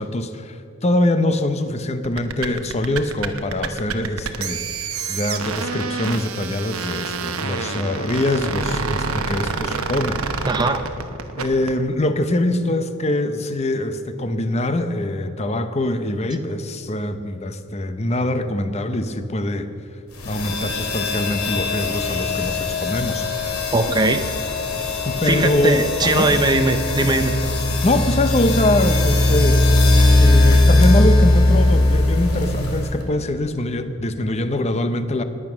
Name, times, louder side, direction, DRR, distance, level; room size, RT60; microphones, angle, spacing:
voice 1, 0.0-10.2 11.4-19.7 20.2-23.2 25.0-26.3 27.8-29.7 30.2-35.2, left 1 dB, 30° left, 10 dB, 0.8 m, -23 dB
sound 1, 2.0-11.8, right 4 dB, 85° right, 1.0 m, -27 dB
voice 2, 10.5-10.9 23.7-24.3 25.2-27.3, right 2 dB, 20° right, 6 dB, 0.6 m, -20 dB
sound 2, 20.2-33.0, left 2 dB, 90° left, 2.5 m, -19 dB
20.0 x 8.8 x 6.1 m, 3.0 s
head